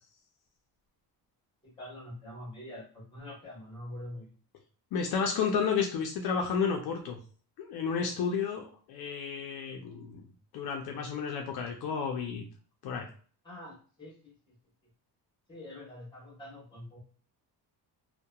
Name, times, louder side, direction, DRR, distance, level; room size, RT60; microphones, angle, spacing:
voice 1, 1.6-4.2 13.4-14.5 15.5-17.0, left 1 dB, 10° left, -4 dB, 1.0 m, -45 dB
voice 2, 4.9-7.2 7.6-10.2 10.5-12.4 12.8-13.1, left 6 dB, 65° left, 2 dB, 0.5 m, -31 dB
2.8 x 2.2 x 2.2 m, 0.41 s
cardioid pair, 170°, 40 cm